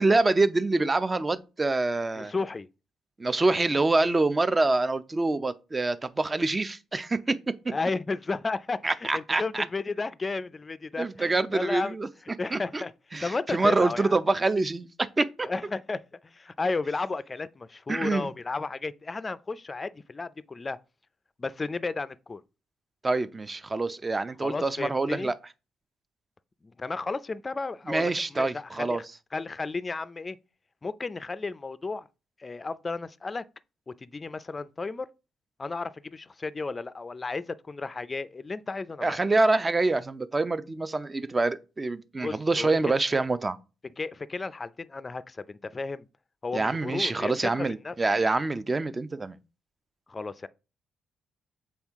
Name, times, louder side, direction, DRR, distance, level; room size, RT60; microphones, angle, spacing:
voice 1, 0.0-2.3 3.2-7.4 8.8-9.7 11.0-12.1 12.5-12.8 13.1-15.5 17.9-18.3 23.0-25.4 27.9-29.0 39.0-43.6 46.5-49.4, right 3 dB, 25° right, 0.5 m, -26 dB
voice 2, 2.2-2.7 7.7-12.0 12.4-12.9 13.2-14.2 15.4-20.8 21.4-22.4 24.4-25.3 26.6-29.0 29.3-30.4 30.8-32.1 32.4-33.4 33.9-35.1 35.6-39.2 42.2-42.8 44.0-46.1 46.4-47.9 50.1-50.5, left 3 dB, 25° left, 0.4 m, -33 dB
7.2 x 4.4 x 3.5 m
cardioid pair, 90°, 0 cm